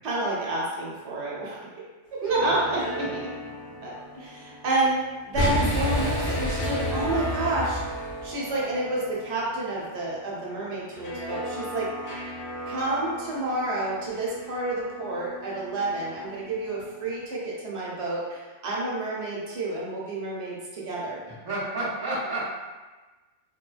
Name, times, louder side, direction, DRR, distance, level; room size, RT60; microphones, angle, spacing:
voice 1, 0.0-1.7 2.2-3.2 3.8-5.0 5.2-7.8 8.2-11.9 12.7-21.2, right 2 dB, 70° right, -5 dB, 0.9 m, -29 dB
sound 1, 2.1-17.3, right 1 dB, 50° left, 0.6 m, -37 dB
Boom, 5.3-8.3, left 1 dB, 85° left, 1.2 m, -28 dB
voice 2, 21.3-22.5, right 2 dB, 25° right, -7 dB, 0.5 m, -31 dB
3.0 x 2.1 x 2.3 m, 1.2 s
omnidirectional pair, 1.2 m